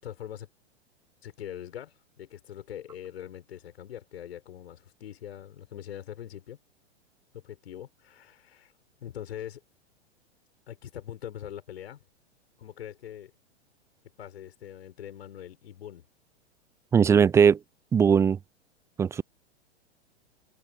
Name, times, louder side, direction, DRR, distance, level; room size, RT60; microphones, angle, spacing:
voice 1, 0.0-0.5 1.2-6.6 7.3-8.7 9.0-9.6 10.7-12.0 12.6-13.3 14.2-16.0, left 10 dB, 65° left, 6.5 m, -42 dB
voice 2, 16.9-17.6 17.9-18.4 19.0-19.2, right 7 dB, 10° right, 0.4 m, -19 dB
open air
figure-of-eight pair, 105°, 34 cm